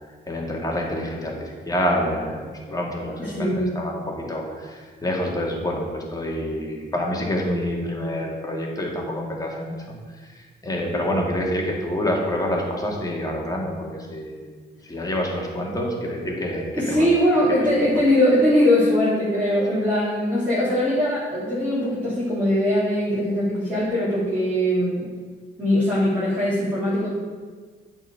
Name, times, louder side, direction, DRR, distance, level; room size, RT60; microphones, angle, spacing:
voice 1, 0.3-9.8 10.3-14.5 14.8-17.1, left 1 dB, 20° left, -1 dB, 2.3 m, -27 dB
voice 2, 3.2-3.8 16.7-25.1 25.6-27.1, left 1 dB, 10° right, -9 dB, 3.0 m, -21 dB
8.7 x 4.6 x 7.1 m, 1.5 s
cardioid pair, 90°, 20 cm